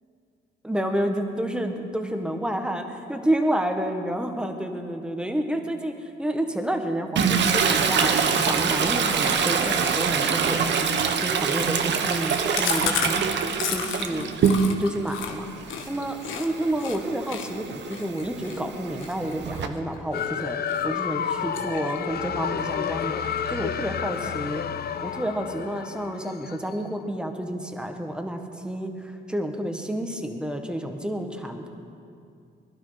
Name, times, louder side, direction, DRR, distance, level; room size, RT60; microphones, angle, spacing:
voice 1, 0.6-8.1 8.4-10.7 11.2-13.2 13.7-14.3 14.8-15.5 15.9-24.6 25.0-31.7, right 1 dB, 5° right, 5 dB, 1.5 m, -29 dB
Toilet flush, 7.2-15.0 15.4-19.7, right 6 dB, 65° right, 1.1 m, -25 dB
Chewing mastication, 12.5-16.5 16.8-17.0 17.3-20.3 20.7-21.0 21.3-22.2 22.4-22.5 22.8-22.9 23.2-23.8, left 7 dB, 85° left, 1.3 m, -32 dB
sound 1, 20.1-26.7, left 8 dB, 50° left, 0.7 m, -30 dB
21.5 x 11.5 x 5.0 m, 2.5 s
cardioid pair, 90°, 20 cm